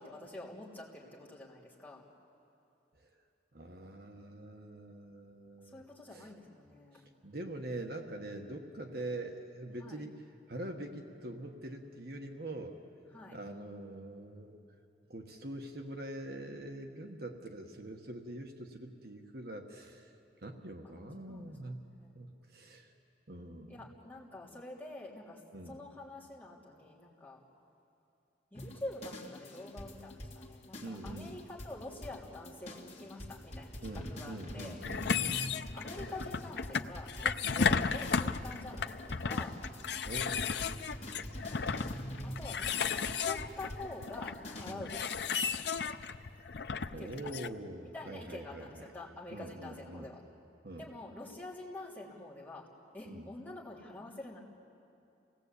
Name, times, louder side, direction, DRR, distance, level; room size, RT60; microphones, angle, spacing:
voice 1, 0.0-2.0 5.7-7.1 9.8-10.0 13.1-13.4 20.9-21.5 22.0-22.1 23.7-25.4 25.7-27.4 28.5-34.8 35.7-39.6 41.5-41.9 42.2-45.2 47.0-47.4 47.9-50.2 50.8-52.6 52.9-54.4, left 2 dB, 10° left, -6 dB, 3.4 m, -47 dB
voice 2, 3.5-5.8 6.1-6.3 7.2-10.1 10.5-12.8 13.3-14.6 15.1-20.1 20.4-22.9 23.3-23.9 25.5-25.8 30.8-31.3 33.8-35.5 37.4-37.6 40.0-40.8 44.6-44.9 46.9-48.9 49.3-50.1 50.6-50.9 53.0-53.3, right 1 dB, 55° right, 3 dB, 1.4 m, -44 dB
sound 1, 28.5-44.7, equal, 35° left, 2.2 m, -45 dB
sound 2, 34.8-47.5, left 6 dB, 70° left, 0.6 m, -34 dB
27.5 x 18.5 x 8.4 m, 2.7 s
head